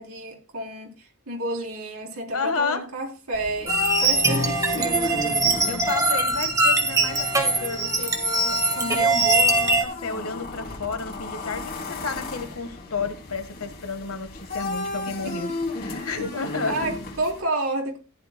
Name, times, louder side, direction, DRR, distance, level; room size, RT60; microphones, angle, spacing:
voice 1, 0.0-3.7 4.0-5.6 15.1-15.6 16.6-18.0, right 2 dB, 90° right, 3.6 m, -31 dB
voice 2, 2.3-2.8 5.2-5.4 5.7-8.2 8.4-15.5 15.8-16.8, left 4 dB, 80° left, 1.4 m, -31 dB
sound 1, 3.3-17.4, left 3 dB, 45° left, 2.8 m, -34 dB
sound 2, 3.7-9.8, right 2 dB, 15° right, 1.5 m, -22 dB
14.5 x 10.5 x 2.2 m
head